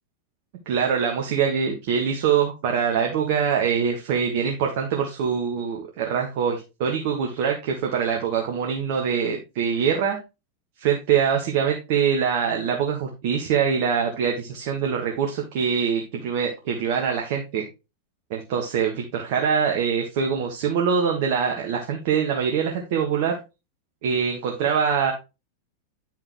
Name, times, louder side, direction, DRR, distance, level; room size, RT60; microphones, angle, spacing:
voice 1, 0.6-10.2 10.8-17.6 18.3-23.4 24.0-25.1, right 7 dB, 50° right, 2 dB, 1.5 m, -24 dB
10.0 x 5.6 x 3.0 m, 0.27 s
figure-of-eight pair, 90°, 0 cm